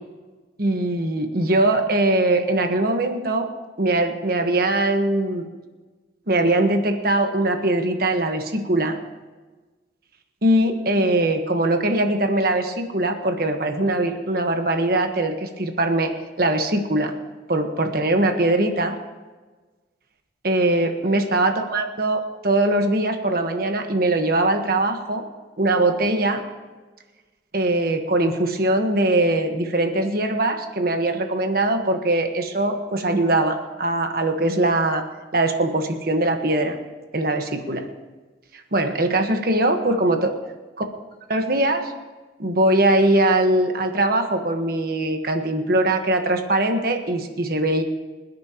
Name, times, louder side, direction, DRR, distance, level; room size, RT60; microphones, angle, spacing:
voice 1, 0.6-3.5 3.8-5.4 6.3-9.0 10.4-16.1 16.4-17.1 17.5-18.9 20.4-25.2 25.6-26.4 27.5-35.0 35.3-36.8 37.1-37.9 38.5-40.3 40.8-40.9 41.3-41.9 42.4-47.8, right 2 dB, 50° right, 5 dB, 1.4 m, -21 dB
25.5 x 10.5 x 3.0 m, 1.3 s
head